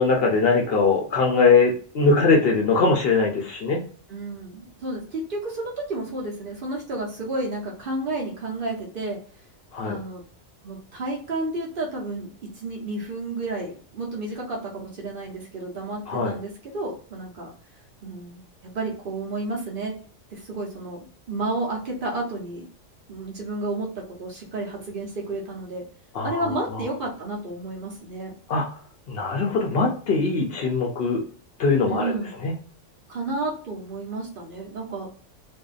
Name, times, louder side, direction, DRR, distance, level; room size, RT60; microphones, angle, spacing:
voice 1, 0.0-3.8 9.7-10.0 16.1-16.4 26.1-26.8 28.5-28.7 29.1-31.2 31.6-32.2 32.4-32.5, left 4 dB, 60° left, 0 dB, 0.7 m, -21 dB
voice 2, 4.1-9.2 9.8-10.2 10.6-17.5 18.0-19.9 20.3-22.7 23.1-25.8 26.2-28.3 31.9-32.3 33.1-35.1, right 2 dB, 55° right, -2 dB, 0.7 m, -31 dB
2.5 x 2.1 x 2.3 m, 0.43 s
omnidirectional pair, 1.3 m